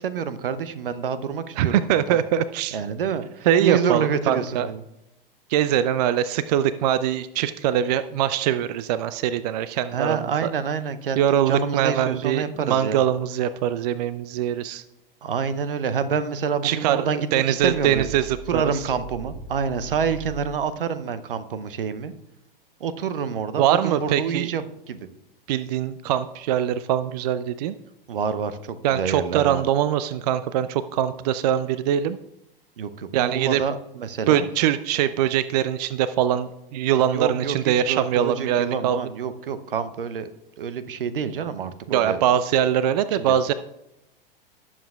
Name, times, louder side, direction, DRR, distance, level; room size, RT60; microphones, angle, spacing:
voice 1, 0.0-2.2 2.7-4.8 9.9-13.0 15.2-18.1 18.5-22.1 22.8-25.1 28.1-29.6 32.8-34.5 37.1-40.3 40.6-42.2 43.1-43.4, right 6 dB, 65° right, 14 dB, 0.8 m, -27 dB
voice 2, 1.6-2.8 3.5-4.7 5.5-10.5 11.2-14.8 16.6-18.9 23.6-24.5 25.5-27.7 28.8-32.2 33.1-33.6 34.3-39.0 41.9-43.5, right 10 dB, 45° right, 14 dB, 0.4 m, -23 dB
sound 1, 17.6-20.6, right 3 dB, 10° right, 1.1 m, -39 dB
18.0 x 7.3 x 2.3 m, 0.88 s
figure-of-eight pair, 95°, 29 cm